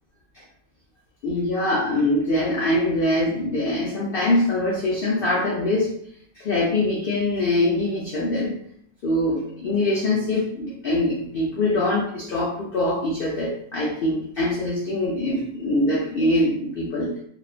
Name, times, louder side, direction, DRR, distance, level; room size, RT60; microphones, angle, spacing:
voice 1, 1.2-5.9 6.4-8.6 9.0-17.1, left 1 dB, 80° left, -4 dB, 0.5 m, -23 dB
2.4 x 2.2 x 2.4 m, 0.65 s
omnidirectional pair, 1.6 m